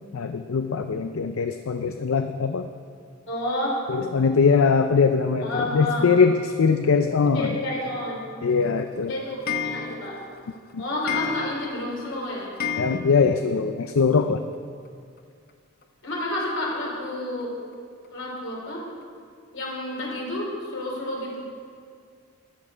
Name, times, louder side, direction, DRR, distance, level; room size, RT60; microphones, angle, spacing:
voice 1, 0.1-2.7 3.9-7.6 8.4-9.1 10.7-10.8 12.8-14.4, left 5 dB, 80° left, 8 dB, 0.5 m, -22 dB
voice 2, 3.3-3.7 5.4-6.1 7.3-8.2 9.1-10.2 10.8-12.5 16.0-17.6 18.1-18.8 19.5-21.4, left 1 dB, 65° left, -3 dB, 3.8 m, -30 dB
Clock, 8.5-13.6 13.9-14.0 14.2-14.3 14.5-14.6 15.8-15.9 16.5-16.6 17.1-17.2 17.7-17.8 18.4-18.5 19.0-19.1, left 7 dB, 45° left, 0.7 m, -33 dB
13.5 x 11.0 x 5.0 m, 2.2 s
head